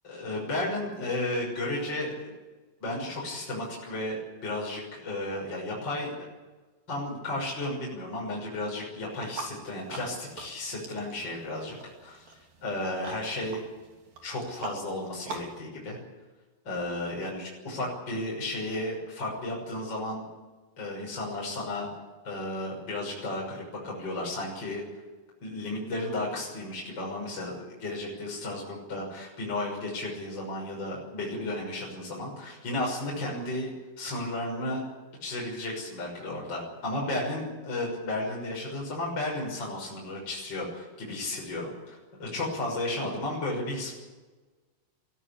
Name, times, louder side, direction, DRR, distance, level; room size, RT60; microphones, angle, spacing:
voice 1, 0.0-2.3 2.8-6.3 6.9-13.6 14.2-16.0 16.7-20.2 20.8-21.9 22.2-24.8 25.4-33.7 34.0-34.9 35.2-43.9, left 1 dB, 30° left, -3 dB, 6.9 m, -33 dB
sound 1, 9.1-15.6, right 3 dB, 70° right, 4.9 m, -44 dB
23.5 x 16.0 x 10.0 m, 1.2 s
omnidirectional pair, 4.2 m